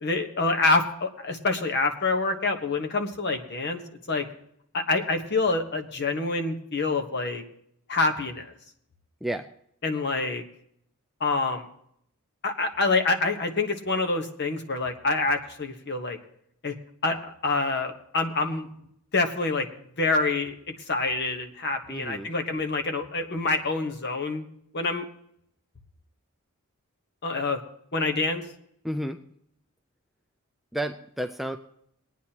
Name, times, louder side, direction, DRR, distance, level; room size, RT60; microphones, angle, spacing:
voice 1, 0.0-3.8 4.1-4.2 4.7-7.4 7.9-8.5 9.8-10.4 11.2-11.6 12.4-16.2 16.6-16.7 17.0-18.7 19.1-19.7 20.0-24.4 24.7-25.0 27.2-27.6 27.9-28.4, left 3 dB, 50° left, 5 dB, 1.2 m, -26 dB
voice 2, 21.9-22.3 28.8-29.2 30.7-31.6, right 1 dB, ahead, 5 dB, 0.3 m, -31 dB
21.0 x 9.4 x 2.9 m, 0.70 s
head